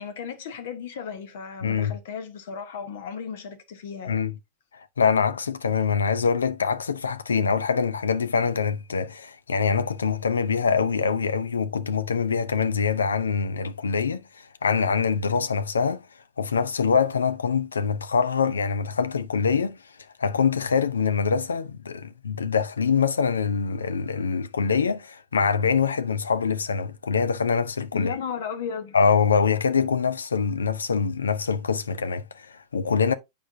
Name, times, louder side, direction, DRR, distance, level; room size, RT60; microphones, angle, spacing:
voice 1, 0.0-4.2 27.9-29.0, left 6 dB, 55° left, 1.2 m, -35 dB
voice 2, 1.6-1.9 4.1-4.3 5.0-16.0 16.4-19.8 20.2-28.1 28.9-33.1, left 6 dB, 70° left, 0.6 m, -24 dB
8.6 x 5.2 x 2.7 m
figure-of-eight pair, 90°, 0 cm